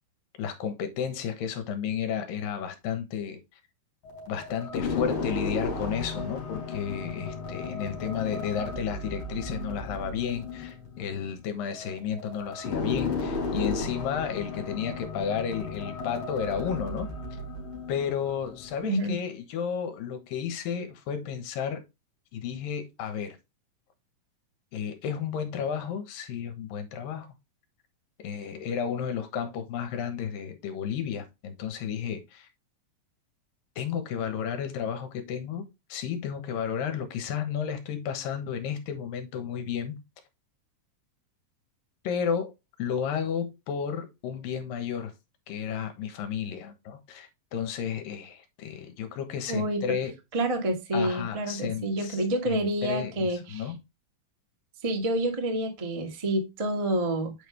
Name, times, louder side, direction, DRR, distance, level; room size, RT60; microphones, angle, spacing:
voice 1, 0.4-3.4 4.3-17.1 17.9-21.8 22.3-23.4 24.7-27.3 28.2-32.5 33.8-40.0 42.0-45.1 45.5-50.1 50.9-53.8, left 7 dB, 85° left, 2.9 m, -32 dB
sound 1, 4.0-18.8, left 4 dB, 45° left, 4.1 m, -34 dB
voice 2, 18.8-19.2 49.5-49.8 50.3-53.7 54.8-57.3, right 1 dB, 45° right, 0.4 m, -28 dB
8.8 x 5.2 x 3.2 m
omnidirectional pair, 4.0 m